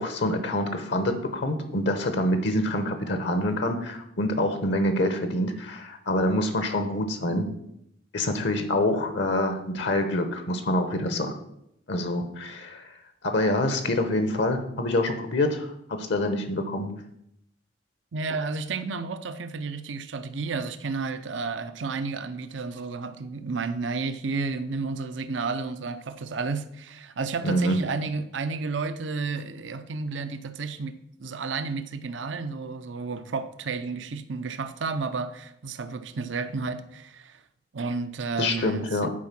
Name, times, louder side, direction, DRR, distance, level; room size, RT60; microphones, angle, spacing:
voice 1, 0.0-7.5 8.1-11.3 11.9-12.9 13.2-16.9 27.4-27.8 38.4-39.1, left 1 dB, 65° left, 0.9 m, -26 dB
voice 2, 18.1-37.4 37.7-39.1, right 4 dB, 80° right, 0.6 m, -32 dB
8.6 x 4.7 x 5.9 m
head